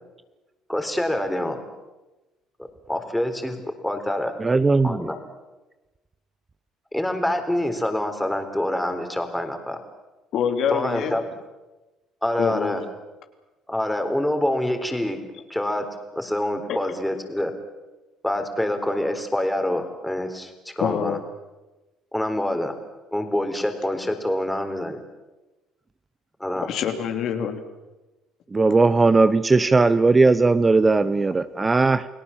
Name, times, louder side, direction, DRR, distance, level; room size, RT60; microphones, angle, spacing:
voice 1, 0.7-1.6 2.6-4.3 4.8-5.2 6.9-9.8 10.7-11.2 12.2-12.8 13.7-15.2 15.5-15.9 16.2-17.5 18.2-21.2 22.1-22.8 23.1-25.0 26.4-26.7, left 1 dB, 5° left, 6 dB, 3.9 m, -26 dB
voice 2, 4.4-5.1 28.5-32.1, right 3 dB, 25° right, 14 dB, 0.9 m, -18 dB
voice 3, 10.3-11.2 12.4-12.8 16.7-16.8 20.8-21.2 26.6-27.6, left 8 dB, 65° left, 6 dB, 3.0 m, -25 dB
29.5 x 17.5 x 7.3 m, 1.1 s
supercardioid pair, 85°, 0 cm